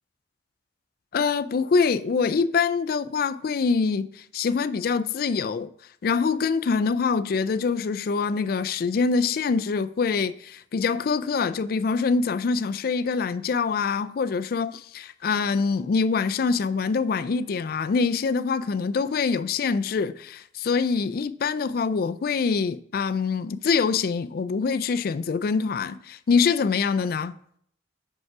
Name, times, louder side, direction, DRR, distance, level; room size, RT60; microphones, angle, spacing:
voice 1, 1.1-5.7 6.0-27.3, left 5 dB, 55° left, 0.3 m, -25 dB
5.3 x 4.7 x 5.9 m
head